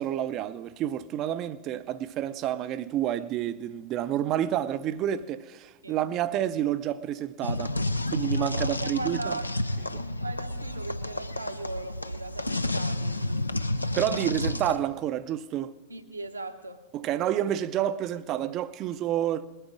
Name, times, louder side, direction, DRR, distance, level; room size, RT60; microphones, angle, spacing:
voice 1, 0.0-7.7 8.1-9.4 13.9-15.7 16.9-19.5, right 11 dB, 35° right, 0.5 m, -29 dB
sound 1, 7.4-14.8, left 1 dB, 85° left, 0.5 m, -30 dB
voice 2, 8.5-14.4 15.9-16.8, right 2 dB, 85° right, 1.0 m, -39 dB
20.0 x 8.9 x 6.0 m
figure-of-eight pair, 90°, 0 cm